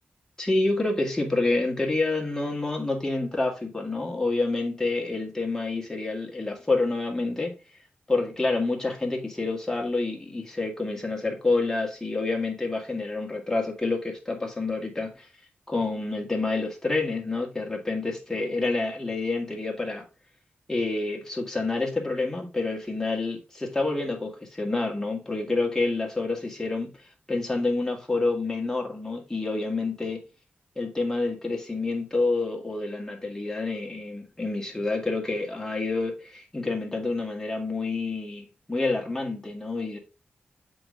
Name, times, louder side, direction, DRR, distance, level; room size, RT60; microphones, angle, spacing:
voice 1, 0.4-7.5 8.1-15.3 15.7-20.0 20.7-26.9 27.3-30.2 30.8-40.0, left 3 dB, 10° left, 1.9 m, -28 dB
7.7 x 3.9 x 3.6 m
wide cardioid pair, 95°, 4 cm